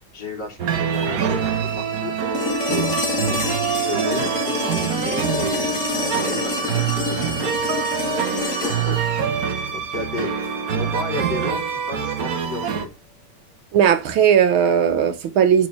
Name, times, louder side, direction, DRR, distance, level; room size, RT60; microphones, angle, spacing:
voice 1, 0.0-2.9 3.3-7.5 8.5-9.1 9.7-10.3 10.7-12.9, left 4 dB, 55° left, 3.5 m, -33 dB
sound 1, 0.6-12.9, right 7 dB, 55° right, 1.3 m, -25 dB
sound 2, 2.3-10.4 12.5-12.6, left 3 dB, 40° left, 1.9 m, -27 dB
voice 2, 13.7-15.7, right 8 dB, 85° right, 1.9 m, -17 dB
7.7 x 5.5 x 7.3 m
omnidirectional pair, 2.2 m